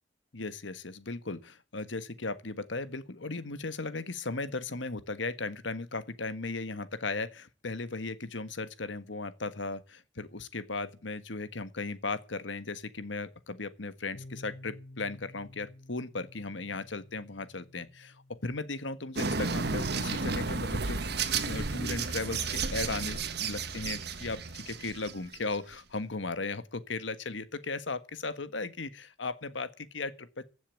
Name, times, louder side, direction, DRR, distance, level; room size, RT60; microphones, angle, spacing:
voice 1, 0.3-21.0 21.4-30.4, left 3 dB, 90° left, 1.5 m, -36 dB
sound 1, 14.1-21.8, left 1 dB, 45° left, 4.4 m, -54 dB
sound 2, 19.2-25.6, right 4 dB, 60° right, 1.4 m, -32 dB
15.5 x 7.2 x 8.7 m
head